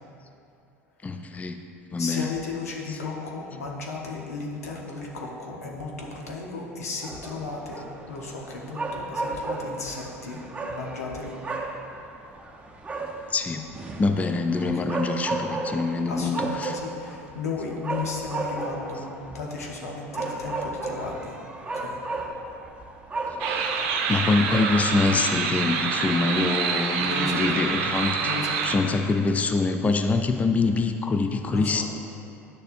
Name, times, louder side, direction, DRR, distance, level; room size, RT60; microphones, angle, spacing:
voice 1, 1.0-1.6 1.9-2.4 2.9-3.0 13.3-13.6 14.0-16.8 19.0-19.1 23.5-23.6 24.1-31.8, left 3 dB, 20° left, 7 dB, 0.4 m, -25 dB
voice 2, 2.0-10.4 10.7-11.4 16.1-21.4 21.7-22.0 27.0-27.8 28.2-28.9 31.5-31.8, left 3 dB, 85° left, -1 dB, 1.0 m, -35 dB
sound 1, 7.0-25.1, right 2 dB, 15° right, 0.8 m, -34 dB
sound 2, 23.4-28.8, right 5 dB, 60° right, 0.7 m, -26 dB
10.0 x 6.6 x 2.6 m, 2.6 s
hypercardioid pair, 75°, 8 cm